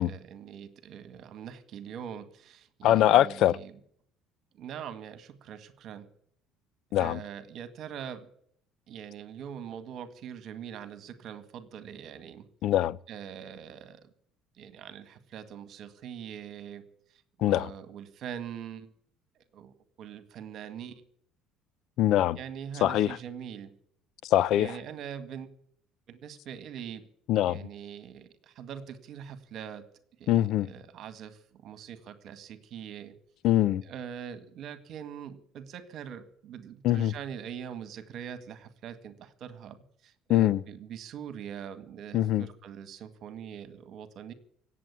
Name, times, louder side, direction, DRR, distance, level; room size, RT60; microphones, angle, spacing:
voice 1, 0.0-3.7 4.6-6.1 6.9-8.3 8.9-12.5 13.1-14.1 14.6-16.8 17.4-18.9 19.4-21.0 22.4-23.7 24.6-25.5 26.1-27.0 27.4-29.8 30.2-33.1 33.8-39.8 40.0-44.3, right 8 dB, 60° right, 1.8 m, -43 dB
voice 2, 2.8-3.6 6.9-7.2 12.6-13.0 17.4-17.7 22.0-22.4 22.8-23.2 24.2-24.7 27.3-27.6 30.3-30.7 33.4-33.8 36.8-37.1 40.3-40.6 42.1-42.5, left 13 dB, 65° left, 0.6 m, -23 dB
17.5 x 7.7 x 9.7 m
supercardioid pair, 95°, 0 cm